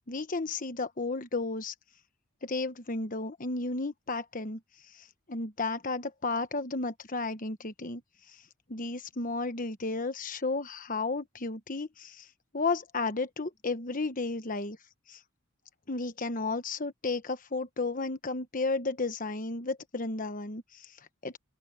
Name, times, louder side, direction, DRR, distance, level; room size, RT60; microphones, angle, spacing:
voice 1, 0.1-1.7 2.4-4.6 4.9-8.0 8.7-12.3 12.5-14.8 15.1-15.2 15.9-21.4, left 3 dB, 40° left, 1.2 m, -33 dB
open air
head